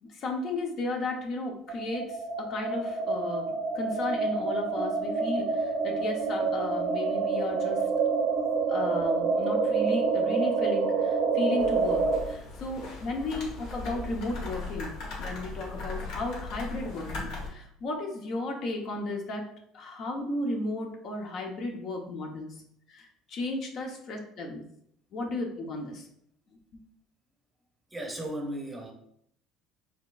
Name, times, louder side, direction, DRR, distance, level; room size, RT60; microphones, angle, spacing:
voice 1, 0.0-7.9 8.7-19.5 19.7-22.6 22.9-24.6 25.1-26.1 26.7-26.8, left 2 dB, 55° left, 2 dB, 1.0 m, -34 dB
sound 1, 1.7-12.2, right 4 dB, 70° right, 0.6 m, -27 dB
sound 2, 11.6-17.5, left 3 dB, 70° left, 1.4 m, -38 dB
voice 2, 27.9-28.9, right 1 dB, 10° right, 3 dB, 0.8 m, -35 dB
4.4 x 3.5 x 2.5 m, 0.71 s
supercardioid pair, 100°, 0 cm